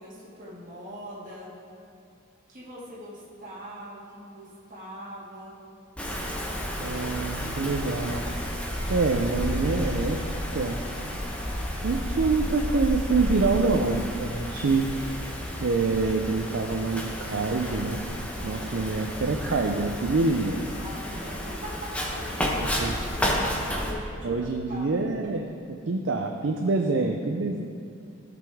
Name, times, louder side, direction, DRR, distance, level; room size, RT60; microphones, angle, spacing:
voice 1, 0.0-1.5 2.5-5.6 20.8-24.9, equal, 40° right, -6 dB, 1.9 m, -42 dB
Wind, 6.0-23.9, equal, 5° left, 0.7 m, -31 dB
voice 2, 6.8-8.2 8.9-10.2 10.5-10.8 11.8-14.8 15.6-18.0 18.4-20.6 22.8-22.9 24.2-25.4 25.7-27.6, right 3 dB, 65° right, 3 dB, 0.5 m, -26 dB
14.5 x 5.2 x 3.5 m, 2.4 s
head